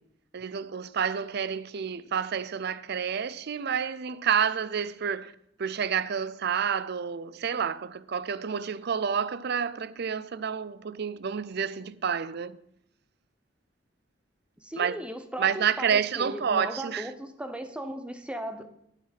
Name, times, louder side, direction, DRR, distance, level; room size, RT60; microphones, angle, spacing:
voice 1, 0.3-12.6 14.8-15.0 15.4-17.1, right 7 dB, 60° right, 0.5 m, -29 dB
voice 2, 14.6-18.7, right 1 dB, 5° right, 0.9 m, -37 dB
11.0 x 9.0 x 4.2 m
head